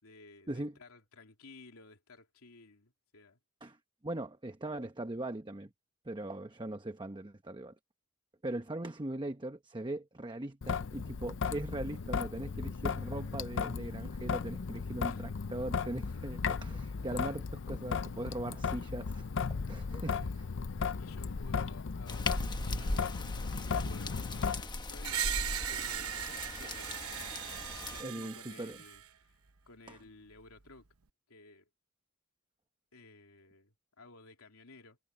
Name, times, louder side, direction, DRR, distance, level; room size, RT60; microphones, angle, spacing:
voice 1, 0.0-3.4 15.1-15.3 17.0-17.5 20.0-20.4 21.0-22.3 22.7-23.1 23.6-29.4 29.7-30.9 31.3-31.7 32.9-35.0, left 3 dB, 90° left, 3.1 m, -55 dB
voice 2, 4.0-5.7 6.0-7.7 8.4-20.3 22.8-22.9 28.0-28.8 29.9-30.0, right 1 dB, 20° right, 0.9 m, -40 dB
Traffic noise roadway noise / Drip / Trickle dribble, 10.6-24.6, left 5 dB, 60° left, 0.6 m, -36 dB
sound 1, 22.1-28.0, left 2 dB, 20° left, 1.1 m, -39 dB
Screech, 25.0-29.0, right 10 dB, 85° right, 1.0 m, -38 dB
head